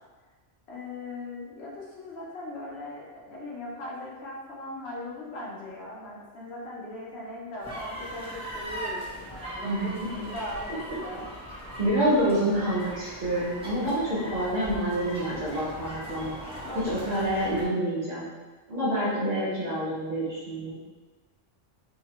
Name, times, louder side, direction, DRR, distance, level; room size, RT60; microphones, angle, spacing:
voice 1, 0.7-11.3 16.5-16.9 19.0-19.2, left 1 dB, 65° left, -5 dB, 0.9 m, -39 dB
sound 1, 7.6-17.7, equal, 10° right, 0.4 m, -39 dB
voice 2, 9.6-10.2 11.8-16.4 16.8-18.3 18.7-20.8, right 1 dB, 40° right, -9 dB, 0.7 m, -27 dB
2.7 x 2.2 x 2.9 m, 1.3 s
omnidirectional pair, 1.2 m